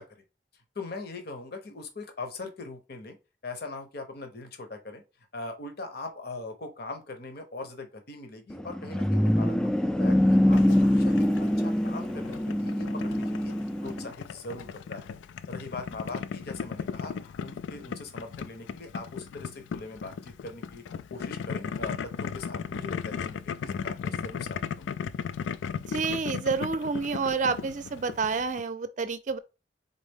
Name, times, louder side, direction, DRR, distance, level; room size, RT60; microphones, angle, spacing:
voice 1, 0.7-3.2 3.4-5.0 5.3-13.5 13.8-15.2 15.5-20.8 21.1-24.9, left 3 dB, 60° left, 0.9 m, -41 dB
sound 1, 8.5-14.1, left 1 dB, 5° left, 0.3 m, -24 dB
Boiling, 10.5-28.6, left 6 dB, 90° left, 0.3 m, -37 dB
voice 2, 25.9-29.4, right 4 dB, 45° right, 0.5 m, -29 dB
4.1 x 3.6 x 3.6 m
head